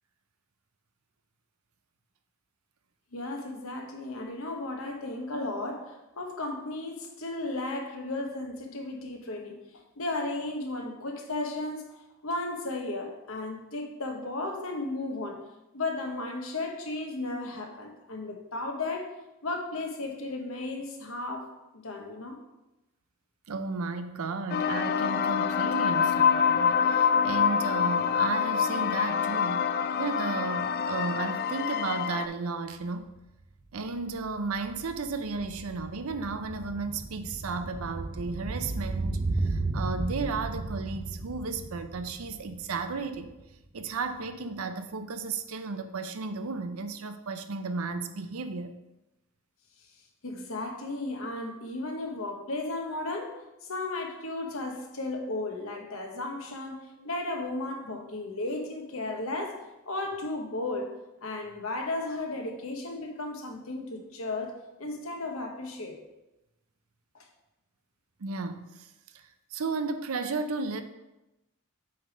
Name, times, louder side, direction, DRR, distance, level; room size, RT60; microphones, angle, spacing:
voice 1, 3.1-9.6 10.0-11.8 12.2-15.4 15.7-19.1 19.4-21.5 21.7-22.4 50.2-53.3 53.7-60.9 61.2-64.5 64.8-66.0 67.1-67.2, left 2 dB, 70° left, 3 dB, 1.1 m, -34 dB
voice 2, 23.5-33.1 33.7-43.3 43.7-48.7 57.0-57.1 68.2-68.9 69.5-70.8, right 4 dB, 80° right, 9 dB, 0.6 m, -34 dB
sound 1, 24.5-32.3, left 7 dB, 45° left, 0.3 m, -26 dB
sound 2, 32.8-32.9 33.2-43.5 43.8-43.9, right 2 dB, 30° right, 0.6 m, -35 dB
7.8 x 3.4 x 5.1 m, 0.97 s
head